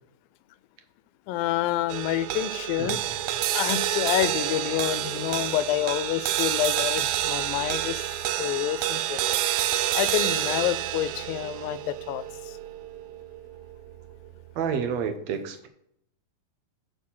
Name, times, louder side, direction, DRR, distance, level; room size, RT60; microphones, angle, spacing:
voice 1, 1.3-3.0 3.5-8.1 8.4-9.5 9.9-12.6, left 13 dB, 85° left, 2.3 m, -28 dB
sound 1, 1.9-14.4, right 12 dB, 90° right, 1.7 m, -29 dB
voice 2, 14.6-15.7, right 7 dB, 70° right, 1.7 m, -29 dB
7.0 x 6.4 x 5.6 m
omnidirectional pair, 4.0 m